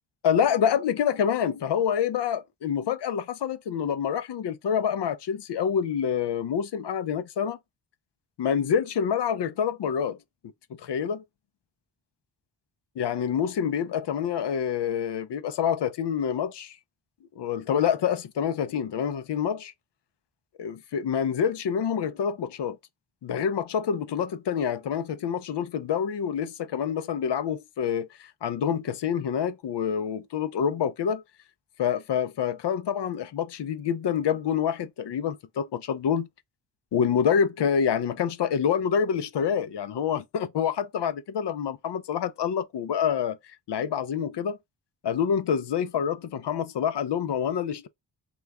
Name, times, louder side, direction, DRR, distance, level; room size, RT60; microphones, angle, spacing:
voice 1, 0.2-7.6 8.4-10.2 10.8-11.2 13.0-16.8 17.4-19.7 20.6-22.8 23.2-31.2 31.8-36.3 36.9-43.4 43.7-44.6 45.0-47.9, left 8 dB, 60° left, 0.5 m, -27 dB
2.9 x 2.3 x 3.5 m
cardioid pair, 65°, 49 cm